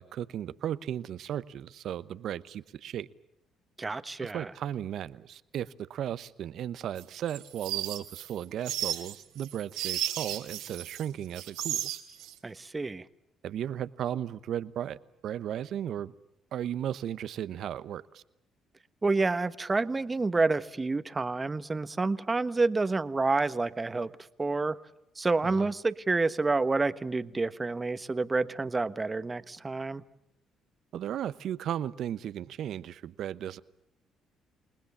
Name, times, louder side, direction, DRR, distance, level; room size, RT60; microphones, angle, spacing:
voice 1, 0.0-3.1 4.2-11.9 13.4-15.0 15.2-16.1 16.5-18.2 25.4-25.7 30.9-33.6, right 10 dB, 65° right, 1.0 m, -35 dB
voice 2, 3.8-4.5 12.4-13.1 19.0-24.1 24.4-24.8 25.2-30.0, right 3 dB, 25° right, 1.3 m, -28 dB
sound 1, 7.0-11.1 11.3-12.3, right 12 dB, 85° right, 3.0 m, -34 dB
29.0 x 19.5 x 7.2 m
supercardioid pair, 60°, 0 cm